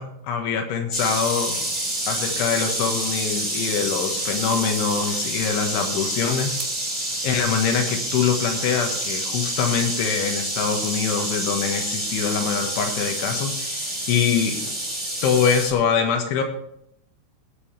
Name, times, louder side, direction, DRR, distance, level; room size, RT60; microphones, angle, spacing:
voice 1, 0.0-1.6 2.1-6.6 7.2-14.7 15.2-16.4, left 7 dB, 90° left, 4 dB, 3.9 m, -24 dB
sound 1, 0.9-15.7, right 1 dB, 10° right, 3.0 m, -28 dB
21.5 x 7.8 x 3.3 m, 0.76 s
omnidirectional pair, 5.3 m